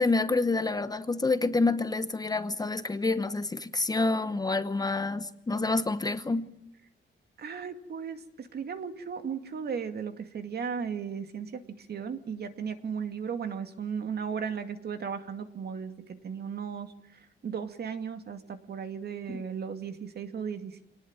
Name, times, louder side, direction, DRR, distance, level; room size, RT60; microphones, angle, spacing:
voice 1, 0.0-6.5 19.3-19.4, left 3 dB, 20° left, 1.0 m, -28 dB
voice 2, 7.4-20.8, right 6 dB, 50° right, 2.3 m, -36 dB
27.0 x 19.0 x 9.0 m
wide cardioid pair, 155°, 21 cm